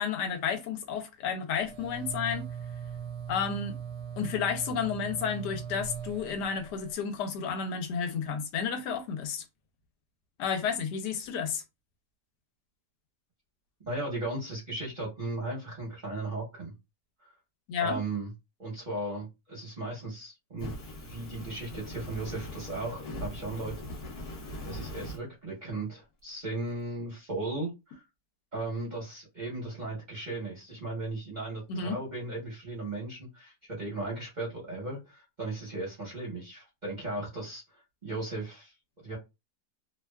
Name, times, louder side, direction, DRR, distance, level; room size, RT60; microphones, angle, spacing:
voice 1, 0.0-2.5 3.3-3.8 4.2-9.4 10.4-11.6 17.7-18.0 31.7-32.0, left 6 dB, 80° left, 1.1 m, -31 dB
sound 1, 1.6-6.9, right 8 dB, 65° right, 0.9 m, -40 dB
voice 2, 13.9-16.7 17.2-17.3 17.8-18.3 18.6-20.7 21.0-23.7 24.6-28.0 28.5-38.7 39.0-39.2, right 2 dB, 40° right, 0.7 m, -36 dB
Fire, 20.6-25.2, left 1 dB, 50° left, 1.0 m, -41 dB
2.7 x 2.2 x 2.2 m
omnidirectional pair, 1.8 m